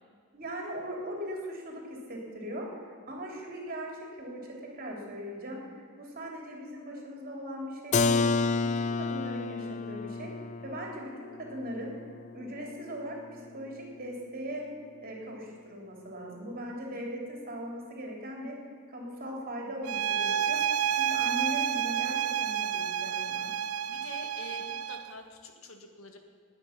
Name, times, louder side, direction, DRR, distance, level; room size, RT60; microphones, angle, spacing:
voice 1, 0.3-8.3 8.6-10.3 10.6-11.9 12.3-14.6 15.0-18.6 18.9-20.6 20.9-23.5, equal, 45° right, -1 dB, 3.2 m, -39 dB
Keyboard (musical), 7.9-13.5, left 4 dB, 35° left, 0.4 m, -31 dB
sound 1, 19.8-25.1, right 9 dB, 75° right, 0.4 m, -30 dB
voice 2, 23.9-26.2, left 2 dB, 75° left, 4 dB, 1.8 m, -46 dB
20.0 x 8.8 x 5.9 m, 2.2 s
head